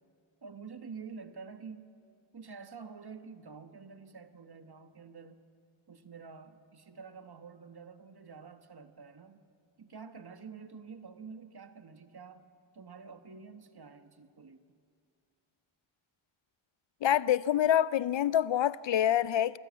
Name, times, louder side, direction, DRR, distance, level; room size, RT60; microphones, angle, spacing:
voice 1, 0.4-1.9 2.3-5.4 5.9-9.4 9.8-12.5 12.7-14.8, right 5 dB, 50° right, 1.3 m, -48 dB
voice 2, 17.0-19.6, left 11 dB, 65° left, 0.6 m, -26 dB
25.0 x 13.5 x 8.4 m
cardioid pair, 50°, 49 cm